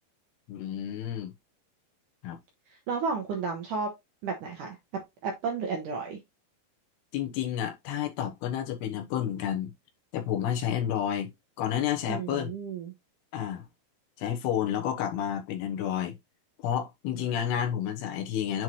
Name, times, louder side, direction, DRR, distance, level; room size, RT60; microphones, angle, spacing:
voice 1, 0.5-1.3 2.2-2.4 7.1-9.7 10.1-11.3 11.6-12.5 13.3-13.6 14.2-16.1 16.6-18.6, left 9 dB, 75° left, 2.9 m, -30 dB
voice 2, 2.9-3.9 4.2-4.8 5.2-6.2 12.1-12.9, right 5 dB, 65° right, 2.1 m, -32 dB
7.7 x 4.5 x 3.0 m
omnidirectional pair, 5.1 m